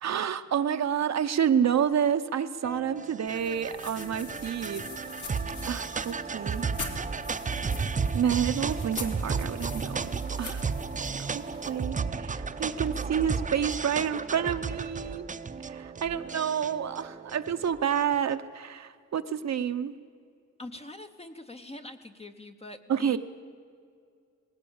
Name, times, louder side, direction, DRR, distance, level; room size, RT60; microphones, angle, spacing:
voice 1, 0.0-4.8 5.6-6.7 8.1-10.7 11.3-15.3 15.6-19.9 22.9-23.2, right 8 dB, 60° right, 8 dB, 0.8 m, -29 dB
sound 1, 2.6-18.2, right 5 dB, 25° right, 0.6 m, -33 dB
sound 2, 3.3-11.9, left 4 dB, 80° left, 2.8 m, -44 dB
voice 2, 20.6-23.2, left 2 dB, 20° left, 6 dB, 0.7 m, -44 dB
19.5 x 17.0 x 8.7 m, 2.2 s
wide cardioid pair, 175°, 30 cm